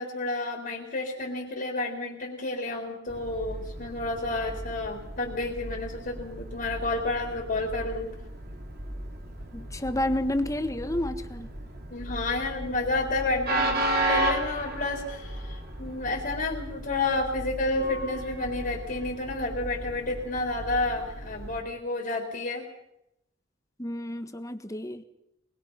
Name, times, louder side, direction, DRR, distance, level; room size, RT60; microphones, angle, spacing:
voice 1, 0.0-8.1 11.9-22.7, left 2 dB, 50° left, 0 dB, 4.1 m, -30 dB
Train, 3.1-21.6, right 1 dB, 55° right, 3.6 m, -35 dB
voice 2, 9.5-11.5 23.8-25.0, left 1 dB, 15° left, 9 dB, 1.4 m, -30 dB
24.0 x 21.5 x 5.8 m, 0.81 s
head